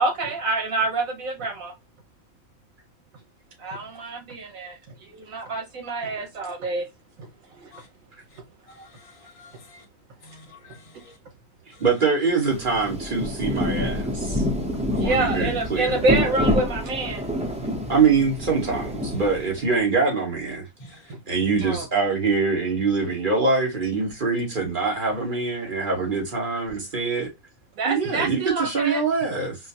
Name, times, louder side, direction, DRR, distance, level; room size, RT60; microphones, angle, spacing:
voice 1, 0.0-1.7 3.6-4.7 5.1-6.9 15.0-17.2 17.6-17.7 21.1-21.2 21.6-21.8 27.8-29.0, right 3 dB, 80° right, 1.5 m, -26 dB
voice 2, 8.7-9.8 10.2-11.1 11.8-11.9 20.8-21.0, left 2 dB, 30° left, 0.8 m, -49 dB
voice 3, 11.8-14.4 14.9-15.9 17.9-20.6 21.3-27.3 27.8-29.6, right 4 dB, 40° right, 1.4 m, -24 dB
Rain, 12.5-19.7, left 1 dB, 10° right, 0.5 m, -27 dB
4.3 x 2.2 x 2.8 m
omnidirectional pair, 1.4 m